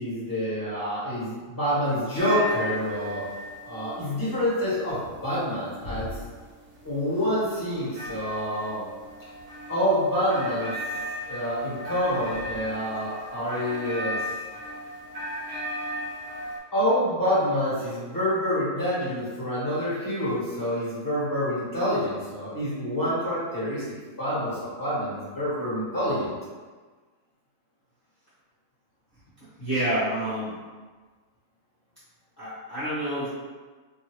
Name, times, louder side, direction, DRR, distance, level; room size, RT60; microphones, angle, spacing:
voice 1, 0.0-3.2 3.6-6.1 6.8-8.8 9.7-10.7 11.3-14.2 16.7-23.8 24.2-26.3, equal, 15° left, -10 dB, 1.4 m, -27 dB
sound 1, 2.2-16.6, equal, 55° right, 1.1 m, -36 dB
voice 2, 29.4-30.6 32.4-33.3, right 1 dB, 35° left, -14 dB, 0.9 m, -28 dB
3.0 x 2.7 x 2.9 m, 1.4 s
omnidirectional pair, 1.7 m